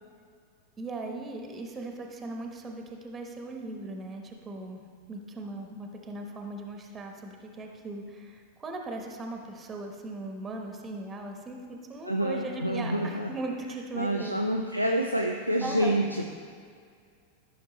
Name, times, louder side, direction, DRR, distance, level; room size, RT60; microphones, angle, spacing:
voice 1, 0.8-4.8 5.1-14.4 15.6-16.0, right 2 dB, 20° right, 3 dB, 1.1 m, -38 dB
voice 2, 12.0-13.3 14.0-16.2, right 1 dB, 90° left, 2 dB, 0.5 m, -27 dB
14.0 x 5.9 x 3.1 m, 2.1 s
figure-of-eight pair, 90°, 0 cm